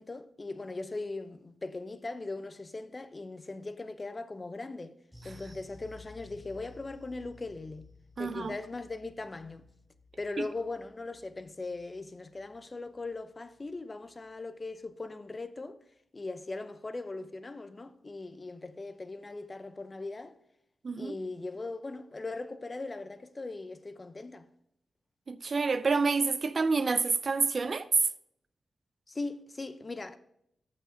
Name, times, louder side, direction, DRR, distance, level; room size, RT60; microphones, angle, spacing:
voice 1, 0.0-4.9 5.2-9.6 10.2-15.8 16.1-20.3 21.0-24.5 29.1-30.2, left 3 dB, 30° left, 0.7 m, -39 dB
sound 1, 5.1-13.8 14.1-14.3 14.7-14.8, left 3 dB, 5° right, 4.3 m, -56 dB
voice 2, 8.2-8.6 20.8-21.1 25.3-27.9, right 4 dB, 50° right, 0.5 m, -28 dB
7.9 x 7.4 x 5.1 m
cardioid pair, 85°, 0 cm